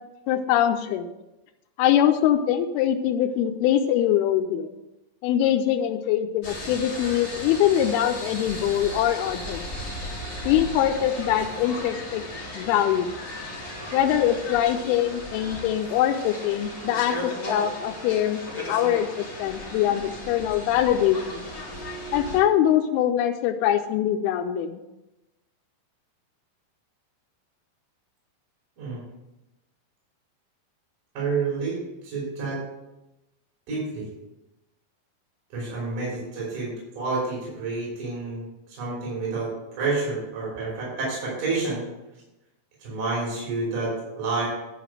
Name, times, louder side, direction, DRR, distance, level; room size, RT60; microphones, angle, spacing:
voice 1, 0.3-1.1 1.8-4.7 5.2-9.6 10.5-12.2 12.6-13.1 13.9-21.5 22.1-24.8, left 10 dB, 90° left, 4 dB, 2.5 m, -23 dB
sound 1, 6.4-22.4, left 1 dB, 25° left, 2.8 m, -36 dB
voice 2, 31.1-32.6 33.7-34.1 35.5-39.5 39.8-41.8 42.8-44.5, right 3 dB, 60° right, -6 dB, 4.9 m, -29 dB
11.0 x 5.0 x 6.5 m, 0.99 s
omnidirectional pair, 4.4 m